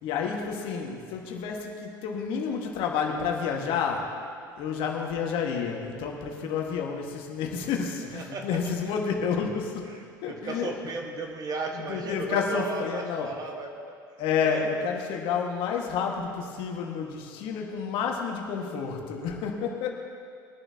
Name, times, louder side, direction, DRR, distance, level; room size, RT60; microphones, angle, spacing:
voice 1, 0.0-4.2 4.6-9.9 10.2-10.7 11.7-13.3 14.2-19.9, left 6 dB, 50° left, 1 dB, 1.8 m, -30 dB
voice 2, 8.1-8.9 9.4-9.5 9.9-13.8 14.4-14.7, right 3 dB, 35° right, 2 dB, 1.7 m, -36 dB
22.0 x 10.5 x 2.9 m, 2.3 s
figure-of-eight pair, 75°, 11 cm